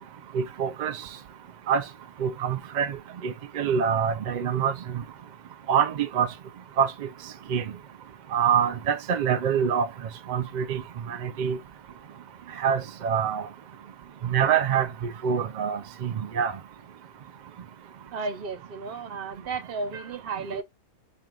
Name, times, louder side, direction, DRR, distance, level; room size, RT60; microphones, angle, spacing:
voice 1, 0.3-1.0 1.7-1.8 2.2-3.0 3.2-5.0 5.7-6.3 6.8-7.1 7.5-7.6 8.3-9.9 10.3-10.8 11.1-11.6 12.6-13.5 14.2-16.5 20.5-20.6, right 7 dB, 75° right, 0.4 m, -25 dB
voice 2, 18.1-20.6, right 4 dB, 50° right, 0.8 m, -33 dB
4.4 x 2.3 x 3.5 m
omnidirectional pair, 1.4 m